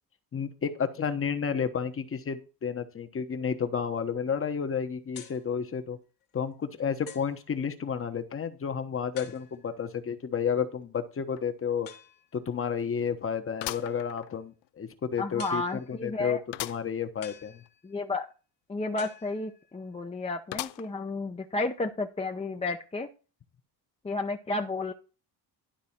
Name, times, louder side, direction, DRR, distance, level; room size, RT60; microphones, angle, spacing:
voice 1, 0.3-6.0 6.3-11.9 12.3-17.6, left 7 dB, 30° left, 9 dB, 1.1 m, -31 dB
sound 1, 5.1-5.5 6.2-6.3 7.1-7.4 9.2-9.8 11.9-12.3 13.6-14.1 15.4-16.1 17.2-18.1 19.0-19.8, left 9 dB, 60° left, 1.7 m, -47 dB
sound 2, 11.4-11.5 11.9-12.0 13.6-14.7 15.2-15.3 16.5-16.9 17.3-17.4 17.6-17.7 20.5-21.1 21.7-21.8 22.8-22.9, left 18 dB, 80° left, 0.5 m, -38 dB
voice 2, 15.2-16.4 17.8-18.3 18.7-23.1 24.0-24.9, left 3 dB, 15° left, 4 dB, 0.7 m, -32 dB
11.5 x 4.1 x 5.8 m, 0.33 s
cardioid pair, 125°, 41 cm